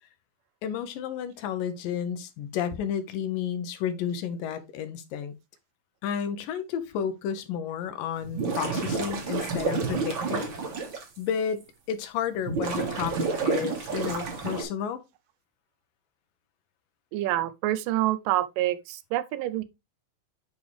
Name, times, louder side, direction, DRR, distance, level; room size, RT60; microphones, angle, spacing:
voice 1, 0.6-5.3 6.0-10.5 11.2-15.0, left 8 dB, 80° left, 2.5 m, -32 dB
sound 1, 8.2-11.0 11.6-11.7 12.5-14.6, right 4 dB, 45° right, 1.9 m, -29 dB
voice 2, 17.1-19.6, right 15 dB, 90° right, 2.3 m, -27 dB
7.1 x 5.3 x 3.2 m
omnidirectional pair, 3.9 m